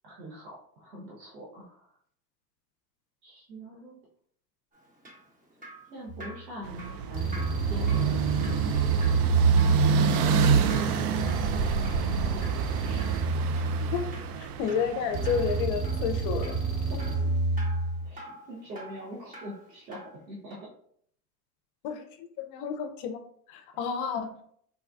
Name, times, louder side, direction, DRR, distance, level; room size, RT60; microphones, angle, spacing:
voice 1, 0.0-1.9 3.2-4.0 5.9-9.3 11.0-13.1 16.9-17.3 18.0-20.0 20.3-20.6, equal, 85° right, -5 dB, 1.0 m, -44 dB
Drip, 4.7-20.2 20.5-20.6, right 1 dB, 15° right, 0.9 m, -48 dB
sound 1, 6.1-6.4 7.1-10.4 11.2-14.4 15.1-18.1, right 3 dB, 45° right, 1.1 m, -30 dB
sound 2, 6.6-15.6, right 6 dB, 65° right, 0.5 m, -26 dB
voice 2, 14.4-16.5 21.8-22.0 22.4-23.2 23.5-24.3, left 7 dB, 40° left, 7 dB, 0.5 m, -30 dB
4.0 x 2.2 x 2.5 m, 0.63 s
hypercardioid pair, 90°, 50 cm